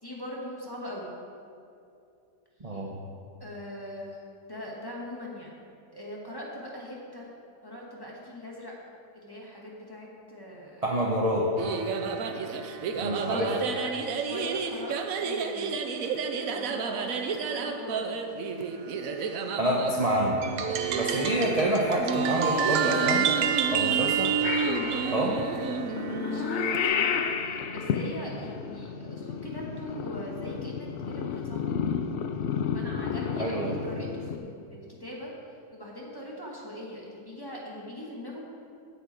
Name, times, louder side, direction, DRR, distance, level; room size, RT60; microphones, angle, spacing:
voice 1, 0.0-1.1 2.7-2.8 3.4-4.2 4.5-5.5 5.9-7.3 7.6-8.7 9.1-10.9 11.6-11.9 13.0-16.0 16.4-18.2 20.9-21.5 23.8-24.4 24.7-25.3 25.9-31.6 32.7-35.3 35.7-38.4, left 1 dB, 15° left, -4 dB, 1.7 m, -41 dB
voice 2, 2.6-3.0 10.8-11.5 12.9-13.5 19.5-20.4 20.9-23.2 23.7-24.3 25.1-25.3 33.4-33.8, right 1 dB, 30° right, -2 dB, 0.9 m, -27 dB
sound 1, 11.6-26.9, right 5 dB, 65° right, 1.0 m, -32 dB
sound 2, 20.4-25.2, right 8 dB, 90° right, 1.3 m, -28 dB
Purr / Meow, 24.4-34.4, left 7 dB, 80° left, 0.5 m, -32 dB
9.8 x 5.8 x 8.4 m, 2.6 s
omnidirectional pair, 1.8 m